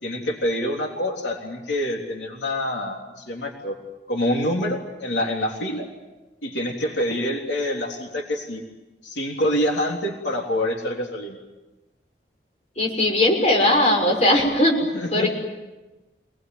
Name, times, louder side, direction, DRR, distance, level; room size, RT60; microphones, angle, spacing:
voice 1, 0.0-3.8 4.1-5.9 6.4-8.6 9.0-11.4 14.9-15.3, left 1 dB, 85° left, 0 dB, 3.6 m, -26 dB
voice 2, 12.8-14.7 15.1-15.3, left 1 dB, 40° left, 0 dB, 6.5 m, -19 dB
26.5 x 20.5 x 9.5 m, 1.1 s
head